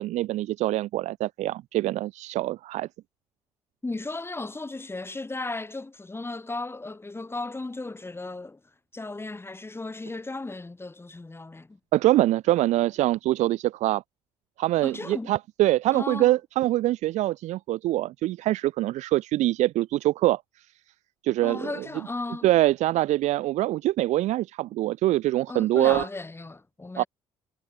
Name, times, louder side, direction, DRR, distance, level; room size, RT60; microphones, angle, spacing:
voice 1, 0.0-2.9 11.9-14.0 14.6-20.4 21.2-21.7 22.4-26.1 27.0-27.1, right 16 dB, 70° right, 0.7 m, -24 dB
voice 2, 3.8-8.6 8.9-11.8 14.8-15.3 15.9-16.3 21.4-22.5 25.5-27.1, left 2 dB, 20° left, 4.8 m, -35 dB
hypercardioid pair, 60°, 13 cm